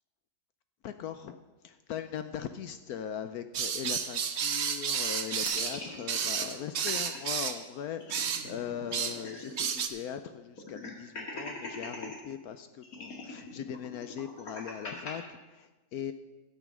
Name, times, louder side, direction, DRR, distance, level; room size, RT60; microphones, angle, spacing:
voice 1, 0.8-1.4 1.6-16.1, left 9 dB, 70° left, 10 dB, 0.9 m, -40 dB
sound 1, 3.5-7.6 8.1-8.5 8.9-9.2 9.4-9.9, right 7 dB, 55° right, 0.8 m, -31 dB
sound 2, 5.5-7.2 7.6-7.7 7.9-9.7 10.0-10.1 10.6-12.2 12.8-15.1, left 2 dB, 50° left, 2.3 m, -42 dB
12.0 x 8.3 x 6.1 m, 1.2 s
omnidirectional pair, 2.0 m